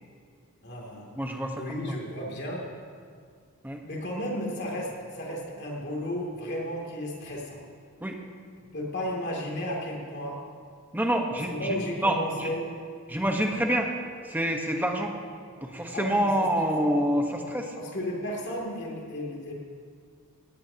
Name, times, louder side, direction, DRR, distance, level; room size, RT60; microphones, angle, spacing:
voice 1, 0.6-1.1 1.6-2.6 3.8-7.6 8.7-10.4 11.5-12.7 15.9-16.5 16.8-17.0 17.7-19.5, equal, 50° left, -2 dB, 2.9 m, -33 dB
voice 2, 1.1-1.8 3.6-3.8 8.0-8.2 10.9-12.5 13.1-13.9 14.2-15.1 15.6-17.7, equal, 10° right, 2 dB, 1.2 m, -27 dB
18.5 x 17.5 x 2.9 m, 2.1 s
head